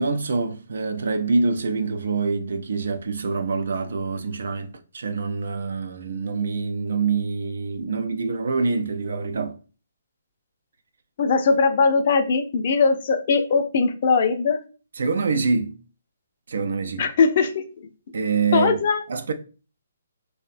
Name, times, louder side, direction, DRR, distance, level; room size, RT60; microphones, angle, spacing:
voice 1, 0.0-9.6 15.0-15.8 16.5-17.1 18.1-18.8 19.1-19.3, right 4 dB, 70° right, 0.3 m, -25 dB
voice 2, 11.2-14.6 17.0-17.9 18.5-19.0, left 4 dB, 45° left, 0.4 m, -20 dB
2.6 x 2.0 x 2.4 m
hypercardioid pair, 155°, 0 cm